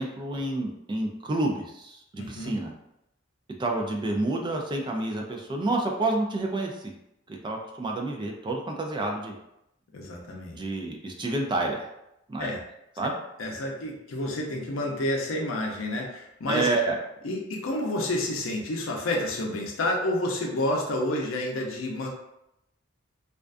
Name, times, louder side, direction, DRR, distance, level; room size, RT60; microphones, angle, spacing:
voice 1, 0.0-2.7 3.6-6.9 7.3-9.3 10.5-11.9 12.3-12.5 13.0-13.1 16.5-17.0, right 2 dB, 25° right, 1 dB, 0.3 m, -29 dB
voice 2, 2.2-2.5 9.9-10.6 12.4-12.6 13.4-16.7 17.2-22.1, left 1 dB, 85° left, 0 dB, 0.6 m, -29 dB
2.4 x 2.2 x 2.4 m, 0.83 s
head